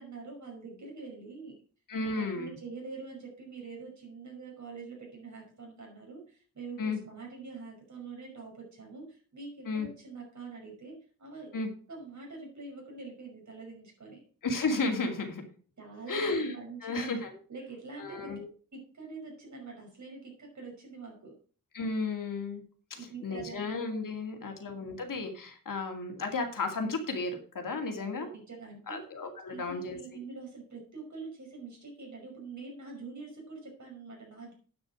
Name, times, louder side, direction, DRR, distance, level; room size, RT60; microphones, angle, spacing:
voice 1, 0.0-1.6 2.2-11.5 11.9-14.2 15.8-17.2 17.5-18.3 18.7-21.3 22.9-23.7 27.9-29.1 29.5-34.5, right 4 dB, 55° right, -1 dB, 5.5 m, -45 dB
voice 2, 1.9-2.5 6.8-7.0 9.7-9.9 11.5-11.7 14.4-15.4 16.1-16.5 16.8-17.3 18.0-18.4 21.7-22.6 22.9-28.3 28.9-30.0, left 3 dB, 70° left, 4 dB, 2.4 m, -33 dB
9.3 x 6.5 x 6.1 m, 0.42 s
wide cardioid pair, 85°, 34 cm